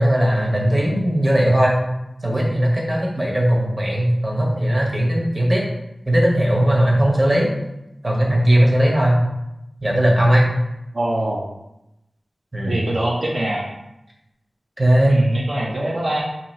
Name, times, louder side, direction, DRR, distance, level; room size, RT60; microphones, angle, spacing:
voice 1, 0.0-1.8 2.2-5.6 6.1-7.5 8.0-9.2 9.8-10.5 12.5-12.8 14.8-15.2, right 1 dB, 30° right, -3 dB, 0.9 m, -18 dB
voice 2, 10.9-11.5 12.7-13.7 15.1-16.2, right 1 dB, 60° right, -4 dB, 0.5 m, -23 dB
2.8 x 2.7 x 4.2 m, 0.91 s
wide cardioid pair, 80°, 0 cm